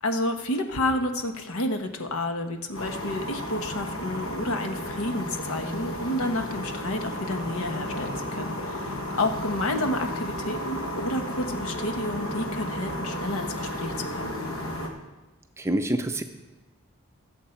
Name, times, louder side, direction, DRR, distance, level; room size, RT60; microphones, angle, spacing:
voice 1, 0.0-14.4, left 1 dB, 85° left, 6 dB, 1.1 m, -30 dB
sound 1, 2.7-14.9, equal, 70° left, 1.5 m, -33 dB
voice 2, 15.6-16.2, right 1 dB, 10° right, 7 dB, 0.5 m, -26 dB
15.5 x 7.2 x 4.5 m, 1.2 s
head